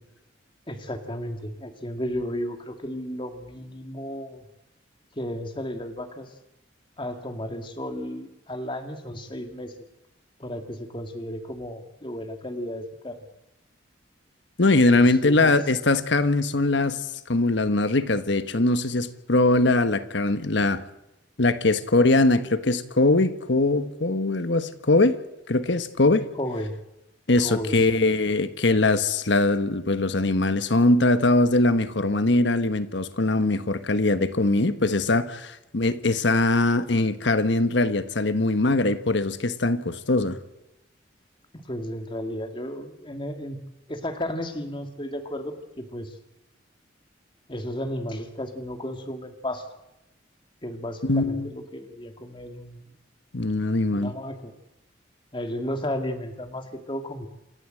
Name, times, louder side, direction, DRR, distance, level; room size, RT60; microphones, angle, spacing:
voice 1, 0.7-4.4 5.1-6.3 7.0-9.7 10.4-13.2 14.9-15.6 26.4-26.7 27.4-28.1 41.6-43.6 43.9-46.2 47.5-49.7 50.6-52.8 53.9-54.5 55.3-57.3, left 1 dB, 25° left, 6 dB, 2.1 m, -33 dB
voice 2, 14.6-17.0 17.3-20.8 21.4-25.2 25.5-26.3 27.3-40.4 51.0-51.5 53.3-54.1, left 2 dB, 70° left, 12 dB, 1.2 m, -21 dB
28.0 x 13.5 x 7.7 m, 0.91 s
head